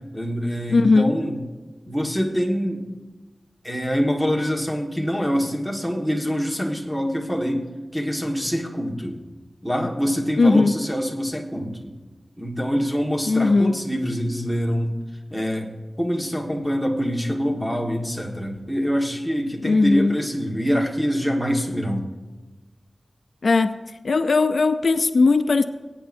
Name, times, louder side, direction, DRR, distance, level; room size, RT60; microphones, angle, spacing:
voice 1, 0.0-1.3 1.8-2.8 3.6-7.6 7.9-9.2 9.6-11.9 12.4-14.9 15.3-15.7 16.0-22.0, equal, ahead, -1 dB, 1.6 m, -25 dB
voice 2, 0.7-1.1 10.4-10.7 13.3-13.8 19.6-20.2 23.4-23.7 24.0-25.6, left 3 dB, 80° left, 10 dB, 0.4 m, -18 dB
21.5 x 9.0 x 2.7 m, 1.3 s
wide cardioid pair, 90°, 0 cm